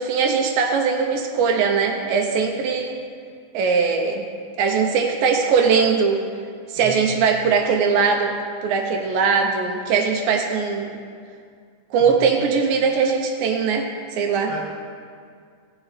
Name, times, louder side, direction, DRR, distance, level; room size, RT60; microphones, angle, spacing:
voice 1, 0.0-3.0 3.5-4.3 4.6-6.3 6.7-8.3 8.6-10.9 11.9-14.5, right 5 dB, 80° right, 2 dB, 2.4 m, -20 dB
voice 2, 6.7-7.1 12.0-12.2 14.4-14.6, right 1 dB, 50° left, -6 dB, 0.9 m, -35 dB
16.5 x 7.0 x 4.1 m, 2.2 s
omnidirectional pair, 4.1 m